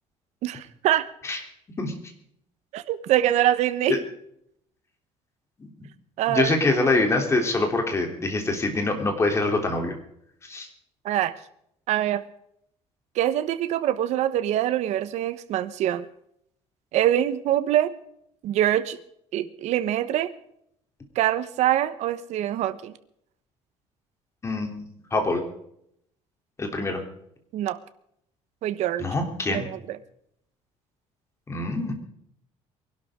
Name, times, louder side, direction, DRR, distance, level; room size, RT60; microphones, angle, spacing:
voice 1, 0.4-1.0 2.7-3.9 6.2-6.6 11.0-11.3 11.9-12.2 13.1-16.1 16.9-17.9 18.4-19.0 19.3-20.3 21.1-22.9 27.5-27.8 28.6-29.1 29.5-30.0, right 12 dB, 65° right, 12 dB, 1.2 m, -24 dB
voice 2, 6.3-10.0 10.4-10.7 24.4-24.8 25.1-25.4 26.6-27.0 29.0-29.7 31.5-32.0, left 2 dB, 20° left, 3 dB, 3.4 m, -25 dB
23.5 x 12.0 x 3.8 m, 0.72 s
cardioid pair, 135°, 12 cm